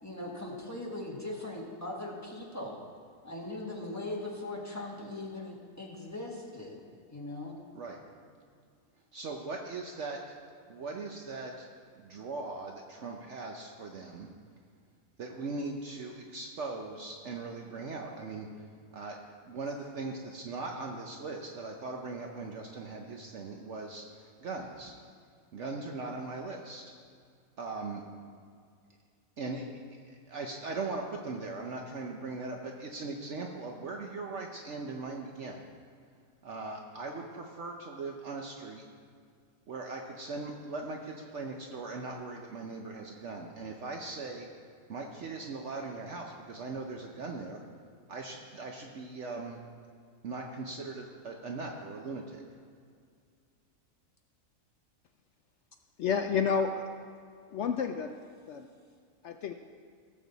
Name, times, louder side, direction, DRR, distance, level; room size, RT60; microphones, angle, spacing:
voice 1, 0.0-2.8 3.2-6.8 7.1-7.5, left 2 dB, 10° left, -3 dB, 1.6 m, -39 dB
voice 2, 9.1-10.2 10.7-11.7 11.9-14.3 15.2-18.5 18.9-19.2 19.4-24.9 25.5-26.9 27.6-28.0 29.4-29.6 30.1-35.6 36.4-38.8 39.7-44.5 44.9-47.6 48.1-49.6 50.2-52.4, right 3 dB, 60° right, 2 dB, 1.1 m, -39 dB
voice 3, 56.0-57.1 57.5-58.1 58.5-58.7 59.2-59.5, left 6 dB, 65° left, 5 dB, 0.8 m, -30 dB
18.0 x 7.5 x 4.0 m, 2.1 s
omnidirectional pair, 1.4 m